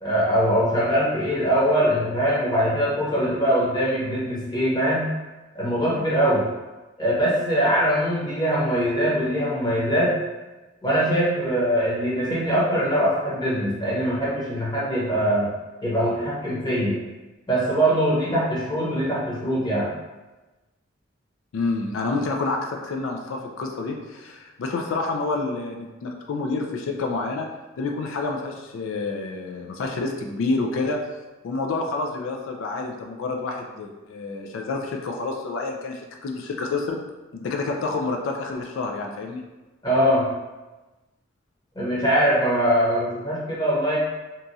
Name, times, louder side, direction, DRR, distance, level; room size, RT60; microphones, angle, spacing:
voice 1, 0.0-5.1 5.5-6.4 7.0-10.2 10.8-15.5 15.8-17.0 17.5-19.9 39.8-40.3 41.7-44.0, equal, 20° left, -8 dB, 0.9 m, -22 dB
voice 2, 21.5-27.5 27.8-31.0 31.4-37.0 37.3-39.4, left 3 dB, 75° left, 2 dB, 0.3 m, -28 dB
2.9 x 2.3 x 2.6 m, 1.1 s
head